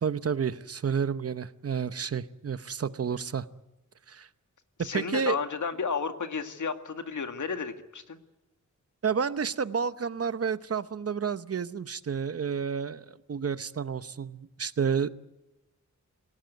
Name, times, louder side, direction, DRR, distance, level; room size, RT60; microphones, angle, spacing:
voice 1, 0.0-3.4 4.1-4.3 4.8-5.4 9.0-15.1, right 6 dB, 50° right, 14 dB, 0.9 m, -30 dB
voice 2, 4.8-8.2, left 5 dB, 70° left, 8 dB, 2.0 m, -32 dB
27.0 x 17.5 x 9.3 m, 1.0 s
wide cardioid pair, 135°, 31 cm